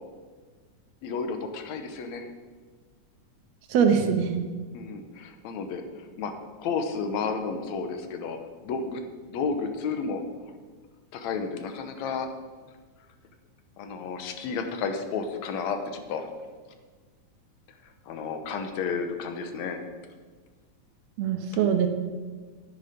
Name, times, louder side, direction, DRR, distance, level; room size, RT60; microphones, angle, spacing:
voice 1, 1.0-2.3 4.7-5.8 6.2-6.3 6.6-8.4 8.6-9.0 9.3-10.2 11.1-12.3 13.8-16.3 18.1-19.8, left 5 dB, 75° left, 6 dB, 2.2 m, -32 dB
voice 2, 3.7-4.4 21.2-21.9, right 7 dB, 70° right, 6 dB, 1.9 m, -22 dB
9.9 x 9.7 x 5.1 m, 1.5 s
omnidirectional pair, 3.3 m